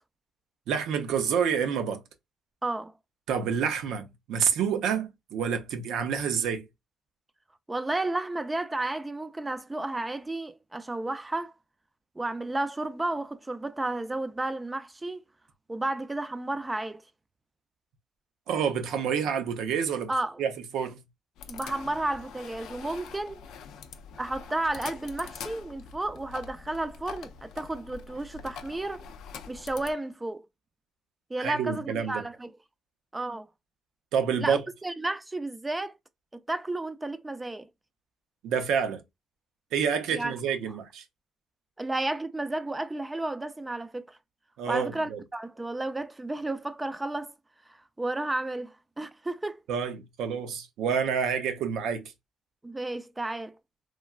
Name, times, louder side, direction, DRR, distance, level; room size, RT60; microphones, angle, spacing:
voice 1, 0.7-2.0 3.3-6.7 18.5-20.1 20.4-21.0 31.4-32.2 34.1-34.6 38.4-39.0 39.7-41.0 44.6-45.2 49.7-52.1, right 7 dB, 85° right, 0.5 m, -28 dB
voice 2, 2.6-2.9 7.7-11.5 12.2-15.2 15.7-17.0 20.1-20.4 21.5-23.4 24.2-29.1 29.5-30.4 31.3-32.5 33.1-33.5 34.4-36.0 36.3-37.7 40.1-40.3 41.8-44.2 44.7-47.3 47.7-49.6 52.6-53.6, right 2 dB, 15° right, 0.4 m, -32 dB
sound 1, 21.4-29.9, left 6 dB, 85° left, 0.4 m, -44 dB
3.2 x 2.2 x 2.3 m
cardioid pair, 90°, 0 cm